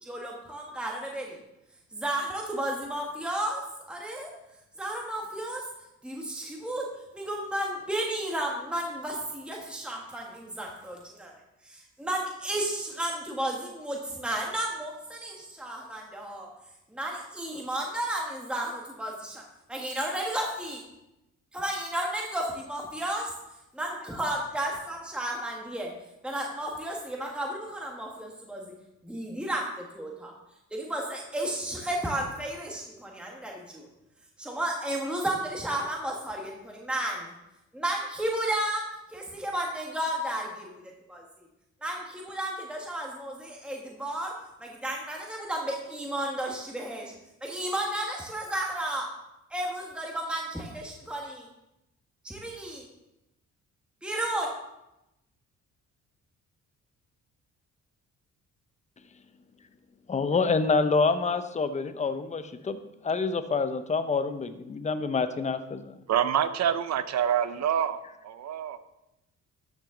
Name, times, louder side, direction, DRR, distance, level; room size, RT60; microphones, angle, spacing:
voice 1, 0.0-1.4 1.9-3.6 3.9-4.3 4.8-5.6 6.0-6.9 7.1-11.3 11.6-16.5 16.9-19.4 19.7-20.8 21.5-23.2 23.8-25.9 26.2-28.7 29.0-30.3 30.7-33.9 34.4-37.3 37.7-38.8 39.1-40.7 41.1-41.2 41.8-44.3 44.6-47.1 47.4-49.1 49.5-51.5 52.2-52.9 54.0-54.5, right 1 dB, 5° right, -1 dB, 1.5 m, -33 dB
voice 2, 60.1-66.0, left 4 dB, 25° left, 10 dB, 0.7 m, -27 dB
voice 3, 66.1-68.8, right 9 dB, 60° right, 12 dB, 0.7 m, -27 dB
13.0 x 6.2 x 3.8 m, 0.91 s
cardioid pair, 90°, 30 cm